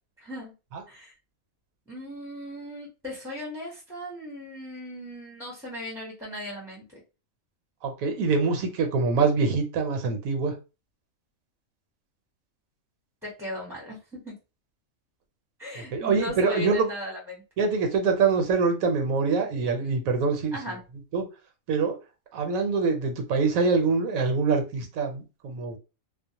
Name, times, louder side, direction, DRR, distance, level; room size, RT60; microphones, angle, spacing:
voice 1, 0.2-0.5 0.9-1.1 1.9-6.8 13.2-14.3 15.6-17.4 20.5-20.8, left 1 dB, 5° right, -5 dB, 0.7 m, -37 dB
voice 2, 7.8-10.5 15.9-16.9 17.6-20.6 21.1-21.2 21.7-22.0 22.3-25.8, right 4 dB, 75° right, 5 dB, 1.0 m, -24 dB
2.4 x 2.0 x 2.7 m, 0.30 s
omnidirectional pair, 1.4 m